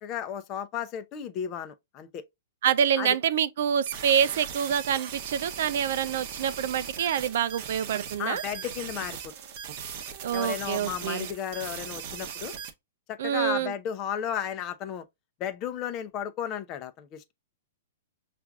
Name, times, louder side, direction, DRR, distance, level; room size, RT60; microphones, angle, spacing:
voice 1, 0.0-2.2 3.0-3.2 8.2-9.2 10.3-12.5 13.1-15.0 15.4-17.3, left 9 dB, 35° left, 0.6 m, -34 dB
voice 2, 2.6-8.4 10.2-11.3 13.2-13.7, right 8 dB, 65° right, 0.4 m, -26 dB
sound 1, 3.9-12.7, right 8 dB, 50° right, 0.8 m, -39 dB
5.7 x 2.5 x 2.3 m
hypercardioid pair, 125°, 0 cm